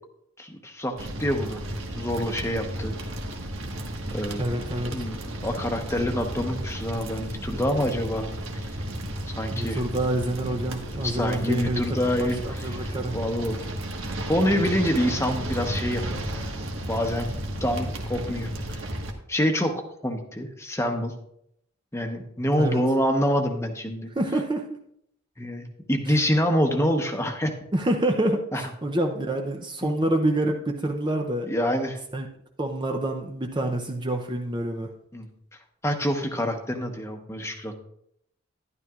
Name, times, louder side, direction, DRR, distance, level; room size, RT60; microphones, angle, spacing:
voice 1, 0.4-1.6 1.9-2.9 4.1-4.4 4.9-8.3 8.5-8.7 9.3-9.8 11.0-13.7 14.0-16.5 16.9-17.3 17.6-18.8 19.3-19.7 20.0-21.1 21.9-24.1 25.4-27.5 28.5-28.6 29.8-29.9 31.5-32.0 33.6-33.7 35.1-35.3 35.8-37.8, equal, 15° left, 4 dB, 1.0 m, -26 dB
sound 1, 1.0-19.1, right 1 dB, 75° right, 1.5 m, -33 dB
voice 2, 4.4-5.1 9.5-13.2 22.6-22.8 24.1-24.8 26.1-26.2 27.7-31.5 32.1-32.3 32.6-34.9, right 1 dB, 20° right, 2 dB, 0.6 m, -27 dB
12.0 x 11.0 x 2.4 m, 0.73 s
head